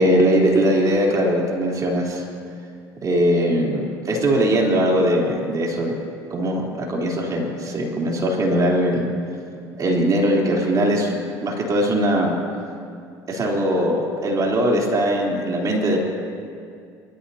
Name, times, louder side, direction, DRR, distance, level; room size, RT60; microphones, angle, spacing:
voice 1, 0.0-2.2 3.0-6.0 6.3-9.1 9.8-12.4 13.3-16.0, equal, 40° right, -2 dB, 3.6 m, -20 dB
25.0 x 14.0 x 2.9 m, 2.3 s
supercardioid pair, 85°, 9 cm